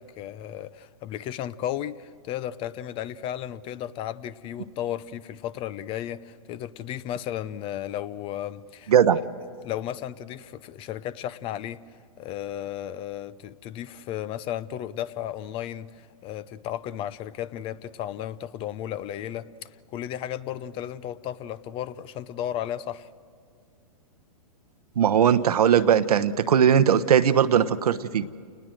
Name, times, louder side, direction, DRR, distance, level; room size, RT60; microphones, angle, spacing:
voice 1, 0.0-8.9 9.6-11.8 12.2-23.1, left 11 dB, 30° left, 18 dB, 0.6 m, -34 dB
voice 2, 8.9-9.2 25.0-28.3, right 8 dB, 75° right, 12 dB, 1.1 m, -19 dB
28.5 x 20.0 x 7.7 m, 2.3 s
hypercardioid pair, 125°, 20 cm